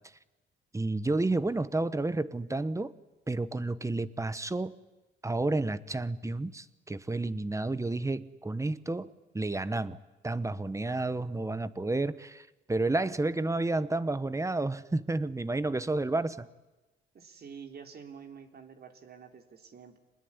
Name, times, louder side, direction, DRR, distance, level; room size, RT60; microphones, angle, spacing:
voice 1, 0.7-2.9 3.3-4.7 5.2-10.0 10.2-16.5, right 2 dB, 15° right, 15 dB, 1.2 m, -31 dB
voice 2, 17.1-20.0, right 6 dB, 50° right, 5 dB, 3.3 m, -48 dB
25.5 x 20.5 x 9.7 m, 1.1 s
cardioid pair, 90°, 20 cm